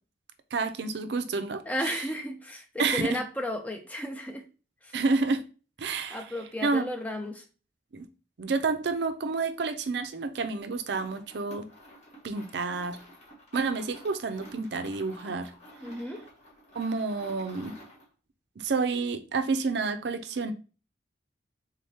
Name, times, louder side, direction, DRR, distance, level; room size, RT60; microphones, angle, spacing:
voice 1, 0.5-2.0 2.8-3.2 4.9-5.4 5.8-6.3 6.6-6.9 7.9-8.1 8.4-11.7 12.2-13.0 13.5-15.5 16.7-17.8 18.6-20.5, right 4 dB, 65° right, 0.5 m, -29 dB
voice 2, 1.7-4.4 4.8-5.0 6.1-7.4 15.8-16.2, left 1 dB, 10° left, 0.5 m, -34 dB
sound 1, 10.8-18.1, equal, 35° left, 1.4 m, -51 dB
3.7 x 3.5 x 2.7 m
head